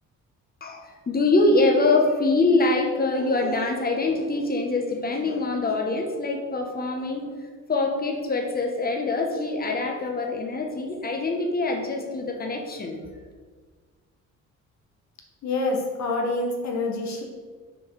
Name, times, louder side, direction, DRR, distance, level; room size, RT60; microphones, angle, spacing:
voice 1, 0.6-7.3 7.7-13.0, left 2 dB, 30° left, 2 dB, 1.2 m, -24 dB
voice 2, 15.4-17.2, left 2 dB, 65° left, 1 dB, 1.3 m, -26 dB
6.1 x 4.6 x 4.8 m, 1.5 s
cardioid pair, 90°, 30 cm